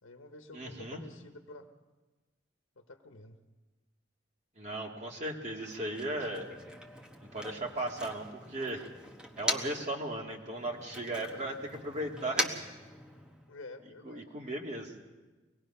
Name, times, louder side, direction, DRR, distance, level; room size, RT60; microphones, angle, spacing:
voice 1, 0.0-1.7 2.8-3.4 13.5-14.3, left 2 dB, 90° left, 6 dB, 1.2 m, -49 dB
voice 2, 0.5-1.0 4.6-6.4 7.3-8.9 9.4-12.6 14.0-14.9, right 1 dB, 35° right, 0 dB, 2.2 m, -36 dB
Motor vehicle (road), 5.5-10.0 10.3-13.5, equal, 5° right, 1.2 m, -40 dB
24.0 x 19.5 x 5.6 m, 1.2 s
head